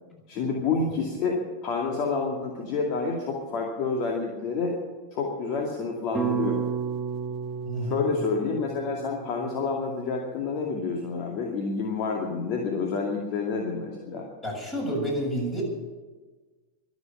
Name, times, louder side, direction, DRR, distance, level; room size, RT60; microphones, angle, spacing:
voice 1, 0.3-4.8 5.1-6.6 7.8-14.3, left 4 dB, 40° left, 1 dB, 2.2 m, -29 dB
sound 1, 6.1-10.4, right 6 dB, 5° right, 1.9 m, -32 dB
voice 2, 7.7-8.0 14.4-15.6, equal, 20° left, 0 dB, 7.3 m, -29 dB
23.5 x 8.4 x 7.1 m, 1.3 s
figure-of-eight pair, 90°, 0 cm